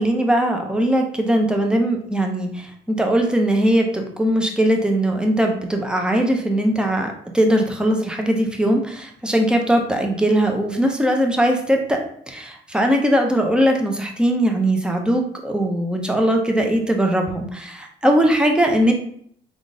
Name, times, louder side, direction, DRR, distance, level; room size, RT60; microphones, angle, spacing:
voice 1, 0.0-12.0 12.3-18.9, right 1 dB, 5° right, 2 dB, 0.7 m, -20 dB
3.6 x 2.5 x 3.8 m, 0.65 s
cardioid pair, 90°, 20 cm